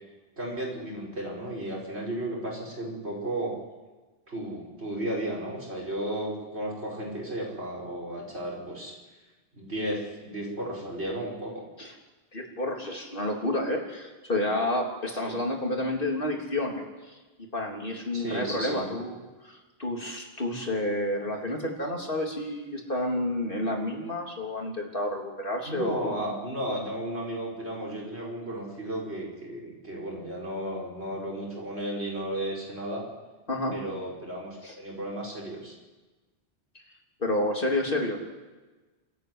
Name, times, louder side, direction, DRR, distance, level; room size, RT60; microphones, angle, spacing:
voice 1, 0.4-3.5 4.3-8.9 9.5-11.7 15.2-15.3 18.1-18.9 25.6-33.0 33.7-35.7, right 1 dB, 90° right, -2 dB, 6.3 m, -34 dB
voice 2, 12.3-17.2 17.5-26.2 33.5-33.7 34.6-34.7 36.7-36.8 37.2-38.2, left 1 dB, 55° left, 0 dB, 3.6 m, -30 dB
26.5 x 14.0 x 9.7 m, 1.2 s
omnidirectional pair, 1.1 m